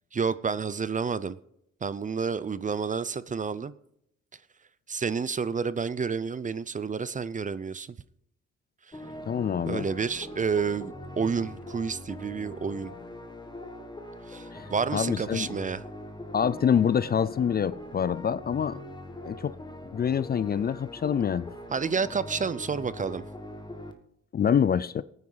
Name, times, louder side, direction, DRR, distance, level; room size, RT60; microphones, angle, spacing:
voice 1, 0.1-1.4 1.8-3.7 4.9-8.0 8.9-9.0 9.6-12.9 14.3-15.8 21.7-23.2, right 5 dB, 25° right, 0.5 m, -30 dB
sound 1, 8.9-23.9, left 1 dB, 15° left, 1.6 m, -42 dB
voice 2, 9.3-9.9 14.5-14.7 14.9-15.5 16.3-18.8 19.2-19.5 19.9-21.5 24.3-25.0, left 8 dB, 35° left, 0.4 m, -26 dB
18.0 x 9.6 x 4.0 m
cardioid pair, 90°, 30 cm